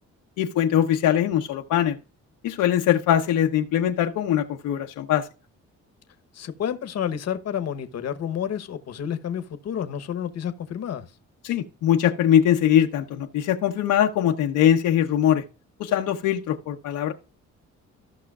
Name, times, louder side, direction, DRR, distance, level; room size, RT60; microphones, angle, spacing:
voice 1, 0.4-2.0 2.4-5.3 11.4-15.4 15.8-17.1, left 10 dB, 85° left, 0.9 m, -22 dB
voice 2, 6.3-11.1, left 9 dB, 60° left, 1.0 m, -30 dB
15.0 x 5.7 x 2.4 m
cardioid pair, 90°, 30 cm